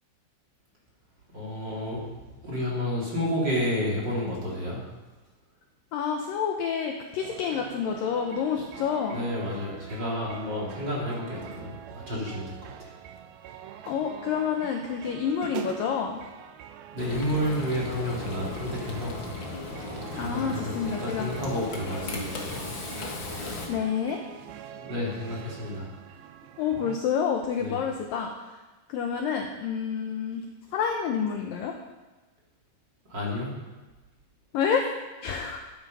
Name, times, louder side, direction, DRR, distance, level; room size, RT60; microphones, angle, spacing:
voice 1, 1.3-2.0 2.4-4.8 9.1-12.9 16.9-19.2 20.1-22.6 24.7-25.9 27.6-27.8 33.0-33.6, left 1 dB, 25° right, -4 dB, 3.3 m, -31 dB
voice 2, 5.9-9.3 13.9-16.2 20.2-21.3 23.7-24.2 26.6-28.6 28.9-30.4 30.7-31.8 34.5-34.9 35.2-35.7, left 7 dB, 85° left, 3 dB, 2.0 m, -28 dB
sound 1, 7.2-27.0, right 9 dB, 85° right, 2.2 m, -44 dB
Frying (food), 17.0-23.7, left 3 dB, 55° left, 1.3 m, -36 dB
13.0 x 12.5 x 5.5 m, 1.2 s
omnidirectional pair, 5.3 m